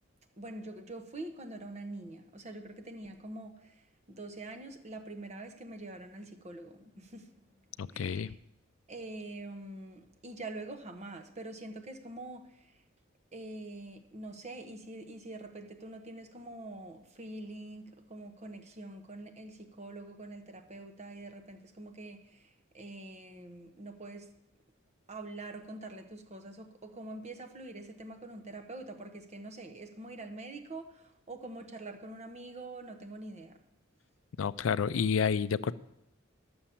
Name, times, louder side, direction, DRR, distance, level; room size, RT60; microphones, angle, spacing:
voice 1, 0.4-7.5 7.9-8.4 8.9-12.8 13.3-24.3 25.1-33.6, right 2 dB, 35° right, 6 dB, 1.0 m, -45 dB
voice 2, 7.8-8.3 34.4-35.7, left 6 dB, 80° left, 17 dB, 0.4 m, -29 dB
11.5 x 7.0 x 7.2 m, 0.83 s
head